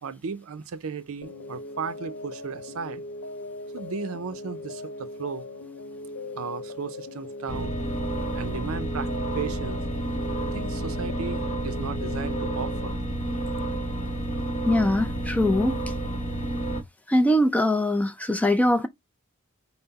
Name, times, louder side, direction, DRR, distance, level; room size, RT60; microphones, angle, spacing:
voice 1, 0.0-3.0 3.7-5.5 6.4-7.7 8.3-9.1 9.3-9.8 10.5-13.0, right 5 dB, 70° right, 0.5 m, -35 dB
sound 1, 1.2-12.9, left 2 dB, 80° left, 0.8 m, -39 dB
sound 2, 7.5-16.8, right 1 dB, 30° left, 0.9 m, -30 dB
voice 2, 14.7-15.8 17.1-18.9, left 1 dB, 5° left, 0.3 m, -22 dB
5.7 x 2.1 x 3.9 m
head